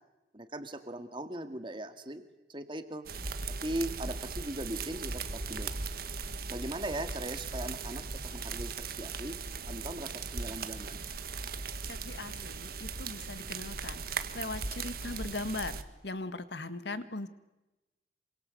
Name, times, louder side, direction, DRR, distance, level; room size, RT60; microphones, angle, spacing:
voice 1, 0.3-2.2 2.5-3.1 3.6-5.7 6.5-8.0 8.3-9.4 9.7-11.0, right 1 dB, 25° right, 8 dB, 2.1 m, -39 dB
sound 1, 3.1-15.8, right 4 dB, 50° right, 1.7 m, -38 dB
voice 2, 11.9-15.7 16.0-17.3, left 2 dB, 65° left, 12 dB, 1.8 m, -39 dB
27.5 x 25.5 x 7.9 m, 1.0 s
head